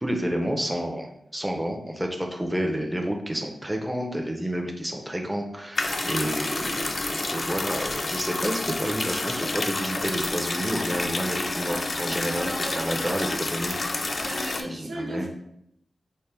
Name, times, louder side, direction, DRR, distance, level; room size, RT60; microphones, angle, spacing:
voice 1, 0.0-13.8 14.1-14.3 14.6-15.3, equal, 10° right, 2 dB, 0.5 m, -30 dB
sound 1, 5.7-14.6, left 2 dB, 45° left, 0.3 m, -29 dB
voice 2, 12.3-13.1 14.1-15.3, right 1 dB, 90° right, -3 dB, 0.8 m, -35 dB
4.2 x 2.1 x 3.3 m, 0.76 s
wide cardioid pair, 80°, 0 cm